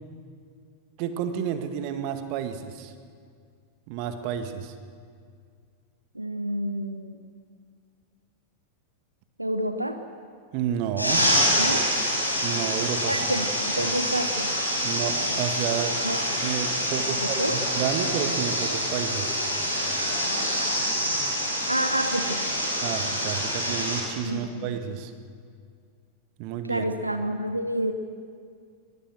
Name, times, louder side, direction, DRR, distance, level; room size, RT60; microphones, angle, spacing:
voice 1, 1.0-2.9 3.9-4.7 10.5-11.2 12.4-13.3 13.8-13.9 14.8-16.0 16.4-19.3 22.8-25.1 26.4-26.9, right 8 dB, 45° right, 8 dB, 1.8 m, -30 dB
voice 2, 6.1-7.2 9.4-10.0 11.6-11.8 13.1-14.5 16.0-16.2 17.1-17.6 21.7-22.4 24.2-24.4 26.7-27.9, right 1 dB, 85° right, 8 dB, 1.0 m, -29 dB
sound 1, 11.0-24.0, equal, 85° left, 5.7 m, -26 dB
22.5 x 21.5 x 7.7 m, 2.2 s
figure-of-eight pair, 90°, 0 cm